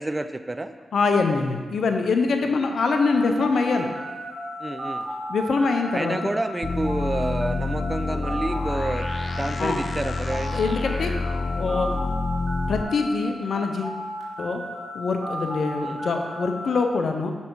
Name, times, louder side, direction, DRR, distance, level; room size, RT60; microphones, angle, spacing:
voice 1, 0.0-0.7 2.4-2.6 4.6-5.1 5.9-9.1 9.4-10.6 15.8-16.0, right 2 dB, 25° right, 10 dB, 0.5 m, -29 dB
voice 2, 0.9-3.9 5.3-6.2 9.6-9.8 10.5-11.1 11.6-11.9 12.7-14.0 14.4-14.6 14.9-17.3, left 4 dB, 70° left, 5 dB, 0.7 m, -24 dB
sound 1, 3.0-13.1 13.4-16.7, equal, 55° right, 2.2 m, -34 dB
sound 2, 6.6-12.8, left 3 dB, 50° left, 0.4 m, -28 dB
6.5 x 5.6 x 4.7 m, 1.5 s
cardioid pair, 50°, 0 cm